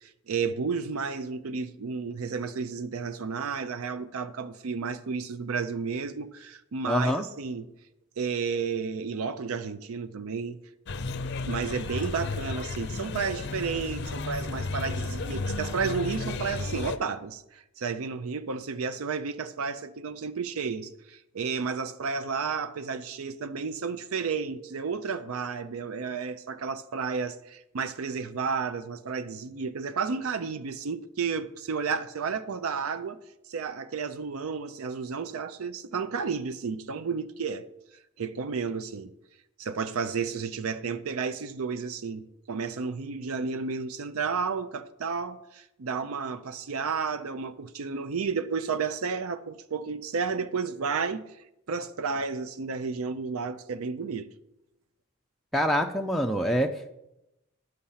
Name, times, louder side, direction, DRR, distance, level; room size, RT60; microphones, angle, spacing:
voice 1, 0.0-7.7 8.2-10.6 11.5-33.2 33.5-37.6 38.2-39.1 39.6-51.2 51.7-54.3, right 5 dB, 80° right, 0.5 m, -32 dB
voice 2, 6.9-7.2 55.5-56.9, equal, ahead, 0.4 m, -26 dB
sound 1, 10.9-17.0, left 3 dB, 50° left, 0.5 m, -33 dB
10.0 x 6.6 x 5.6 m
head